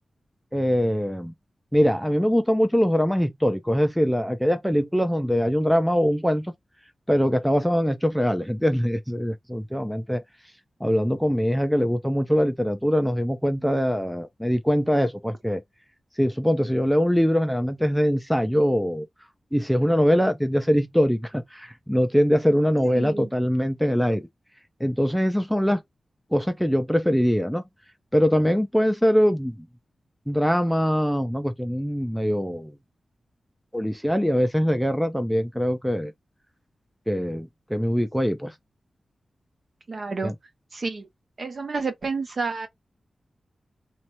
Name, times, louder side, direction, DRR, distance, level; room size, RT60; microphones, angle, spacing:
voice 1, 0.5-1.3 1.7-6.5 7.1-10.2 10.8-15.6 16.2-19.1 19.5-24.3 24.8-25.8 26.3-27.6 28.1-29.7 30.3-32.8 33.7-36.1 37.1-38.5 40.2-40.3, equal, ahead, 0.5 m, -22 dB
voice 2, 22.8-23.3 39.9-40.3 40.7-41.1 41.4-42.7, right 4 dB, 45° right, 1.0 m, -30 dB
3.2 x 2.8 x 4.4 m
wide cardioid pair, 150°, 0 cm